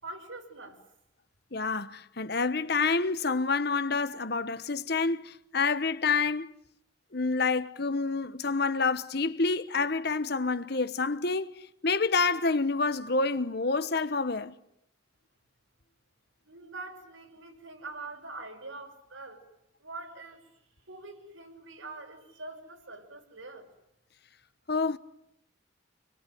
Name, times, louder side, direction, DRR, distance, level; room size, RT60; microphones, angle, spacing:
voice 1, 0.0-0.8 16.5-19.4 19.8-20.6 20.9-23.7, right 3 dB, 85° right, 5.8 m, -44 dB
voice 2, 1.5-6.5 7.1-14.5 24.7-25.0, left 4 dB, 55° left, 1.1 m, -28 dB
29.0 x 22.0 x 9.4 m
head